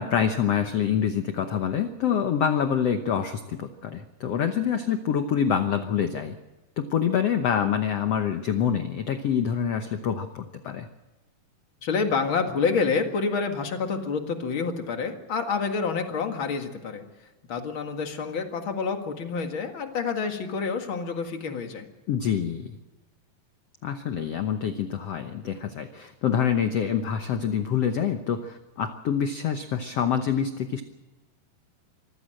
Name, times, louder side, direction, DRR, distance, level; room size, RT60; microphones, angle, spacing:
voice 1, 0.0-6.4 6.8-10.9 22.1-22.7 23.8-30.8, left 8 dB, 85° left, 8 dB, 1.3 m, -26 dB
voice 2, 11.8-17.0 17.5-21.9, left 5 dB, 45° left, 5 dB, 1.9 m, -28 dB
25.0 x 15.0 x 7.7 m, 1.1 s
omnidirectional pair, 4.4 m